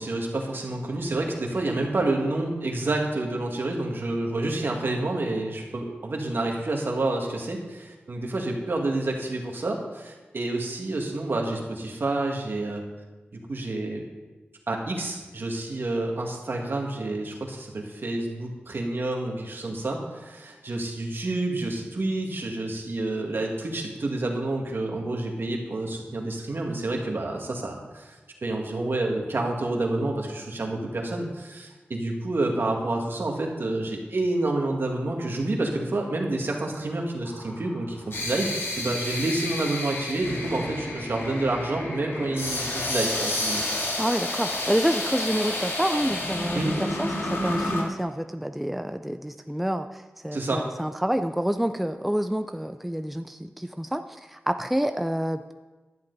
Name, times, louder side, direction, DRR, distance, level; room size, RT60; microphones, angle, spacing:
voice 1, 0.0-12.8 13.5-14.0 14.7-28.1 28.4-38.5 38.8-43.6 46.5-46.8 50.3-50.6, right 2 dB, 65° right, 1 dB, 2.0 m, -29 dB
sound 1, 37.3-47.8, left 1 dB, 80° left, 2.0 m, -30 dB
voice 2, 44.0-46.6 47.0-54.0 54.3-55.5, equal, 5° right, 8 dB, 0.4 m, -28 dB
12.0 x 10.5 x 4.1 m, 1.2 s
wide cardioid pair, 75°, 4 cm